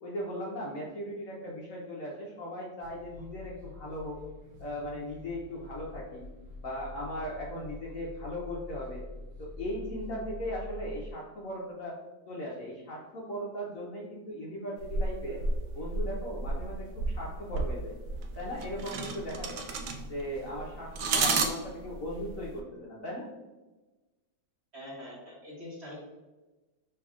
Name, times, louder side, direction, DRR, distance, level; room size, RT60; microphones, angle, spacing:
voice 1, 0.0-4.2 4.6-6.3 6.6-9.0 9.4-11.9 12.3-15.4 15.7-18.0 18.4-19.6 20.1-23.3, equal, 60° left, -4 dB, 0.9 m, -38 dB
sound 1, 2.8-11.1, left 1 dB, 55° right, 1.4 m, -45 dB
sound 2, 14.8-22.6, right 3 dB, 75° right, 0.7 m, -32 dB
voice 2, 24.7-26.0, left 1 dB, 40° right, -5 dB, 1.2 m, -44 dB
5.6 x 3.3 x 2.3 m, 1.2 s
omnidirectional pair, 2.0 m